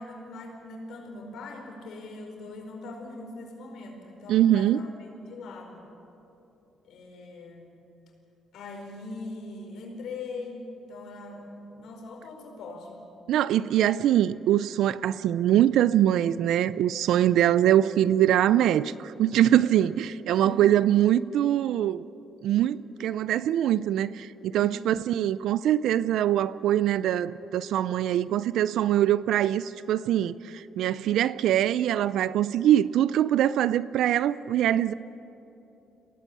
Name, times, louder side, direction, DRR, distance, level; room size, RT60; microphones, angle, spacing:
voice 1, 0.0-5.9 6.8-7.7 8.5-13.0 19.5-19.7 20.3-20.6 24.6-24.9, left 2 dB, 75° left, 4.8 m, -41 dB
voice 2, 4.3-4.8 13.3-22.0 22.4-34.9, right 11 dB, 80° right, 0.4 m, -23 dB
23.0 x 17.5 x 8.4 m
cardioid pair, 90°, 0 cm